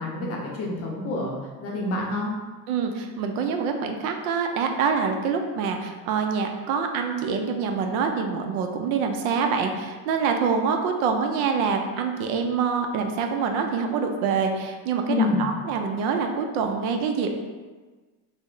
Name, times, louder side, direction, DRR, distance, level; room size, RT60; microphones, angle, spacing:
voice 1, 0.0-1.4 1.6-2.3 15.1-15.4, left 3 dB, 35° left, -2 dB, 0.6 m, -27 dB
voice 2, 2.7-17.4, right 5 dB, 80° right, 4 dB, 0.6 m, -25 dB
3.2 x 2.0 x 3.7 m, 1.3 s
cardioid pair, 150°, 43 cm